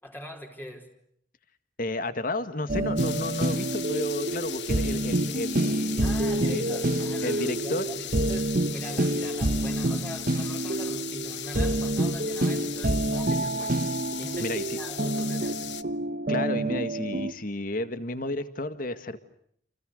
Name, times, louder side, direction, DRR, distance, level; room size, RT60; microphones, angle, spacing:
voice 1, 0.0-0.9 6.0-15.7, equal, 10° left, 2 dB, 4.5 m, -42 dB
voice 2, 1.8-6.1 6.5-6.8 7.2-7.8 14.4-14.8 16.3-19.2, left 2 dB, 50° left, 11 dB, 1.9 m, -32 dB
sound 1, 2.7-17.3, right 1 dB, 55° right, 1.3 m, -28 dB
sound 2, 3.0-15.8, left 12 dB, 85° left, 1.2 m, -38 dB
29.5 x 29.0 x 6.6 m, 0.68 s
head